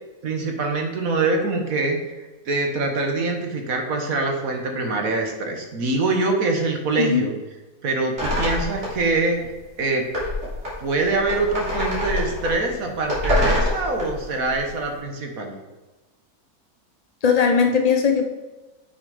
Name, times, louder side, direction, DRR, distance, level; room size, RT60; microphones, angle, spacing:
voice 1, 0.2-7.3 7.8-9.4 9.8-10.1 10.8-15.5, right 3 dB, 65° right, 3 dB, 1.7 m, -24 dB
voice 2, 7.0-7.3 17.2-18.2, left 6 dB, 60° left, 3 dB, 0.4 m, -19 dB
sound 1, 8.2-9.1 9.4-9.5 10.1-14.7, left 1 dB, 45° right, 3.5 m, -26 dB
8.2 x 6.5 x 4.9 m, 1.2 s
omnidirectional pair, 1.6 m